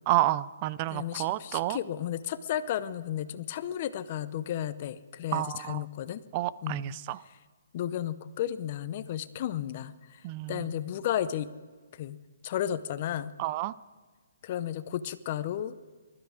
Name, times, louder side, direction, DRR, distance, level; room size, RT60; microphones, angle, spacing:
voice 1, 0.1-1.8 5.3-5.8 6.3-7.2 10.2-10.7 13.4-13.7, right 16 dB, 25° right, 18 dB, 0.4 m, -30 dB
voice 2, 0.9-6.2 6.6-7.0 7.7-10.2 10.5-11.5 11.9-12.2 12.4-13.3 14.4-15.7, left 11 dB, 35° left, 14 dB, 0.7 m, -33 dB
20.5 x 13.0 x 5.0 m, 1.4 s
hypercardioid pair, 165°, 0 cm